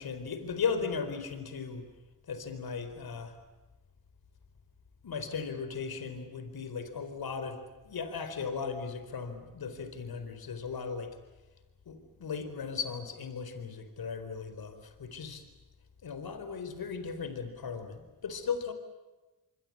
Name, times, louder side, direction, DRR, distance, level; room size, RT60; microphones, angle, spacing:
voice 1, 0.0-1.9 2.3-3.4 5.0-7.6 7.8-11.2 11.9-15.5 16.0-18.7, left 5 dB, 65° left, 9 dB, 4.3 m, -37 dB
25.0 x 24.0 x 8.7 m, 1.1 s
supercardioid pair, 55°, 40 cm